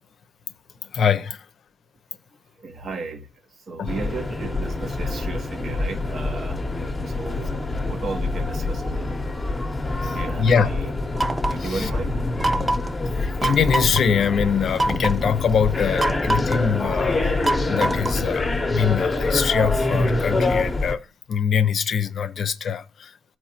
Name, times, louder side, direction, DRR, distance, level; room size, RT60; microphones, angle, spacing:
voice 1, 0.8-1.5 3.8-3.9 10.0-10.7 11.6-11.9 13.1-17.3 17.7-23.1, left 7 dB, 60° left, 0.6 m, -23 dB
voice 2, 2.6-3.3 3.7-6.6 7.0-9.2 10.0-10.9 11.5-12.2, right 3 dB, 50° right, 0.9 m, -34 dB
sound 1, 3.9-21.0, left 2 dB, 15° left, 0.9 m, -26 dB
sound 2, 11.2-11.7 12.4-12.9 13.4-14.0 14.8-15.2 16.0-16.7 17.4-18.3, right 2 dB, 20° right, 0.3 m, -25 dB
13.0 x 4.5 x 2.9 m
cardioid pair, 90°, 0 cm